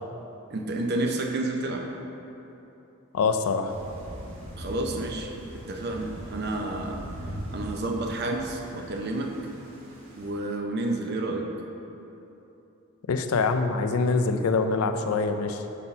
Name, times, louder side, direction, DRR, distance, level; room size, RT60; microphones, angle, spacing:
voice 1, 0.5-1.9 4.6-7.0 7.5-9.4 10.2-11.5, right 2 dB, 50° right, 2 dB, 0.6 m, -30 dB
voice 2, 3.1-3.7 13.1-15.6, left 4 dB, 85° left, 7 dB, 0.4 m, -24 dB
Thunder / Rain, 3.7-10.3, equal, 70° right, 1.2 m, -40 dB
5.6 x 4.2 x 5.4 m, 3.0 s
head